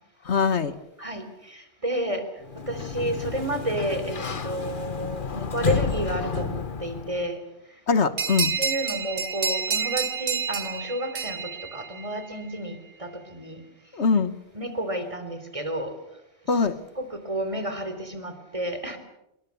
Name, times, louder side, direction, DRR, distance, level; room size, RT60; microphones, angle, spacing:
voice 1, 0.2-0.8 7.9-8.5 13.9-14.3 16.5-16.8, left 5 dB, 75° left, 12 dB, 1.7 m, -22 dB
voice 2, 1.0-2.2 2.7-7.4 8.4-13.6 14.5-16.0 16.5-16.7 17.0-19.0, right 1 dB, 30° right, 8 dB, 3.9 m, -31 dB
Sliding door, 2.4-7.3, left 5 dB, 50° left, 1.3 m, -31 dB
sound 1, 8.2-12.4, right 5 dB, 85° right, 1.8 m, -29 dB
27.0 x 22.5 x 7.1 m, 0.86 s
omnidirectional pair, 1.1 m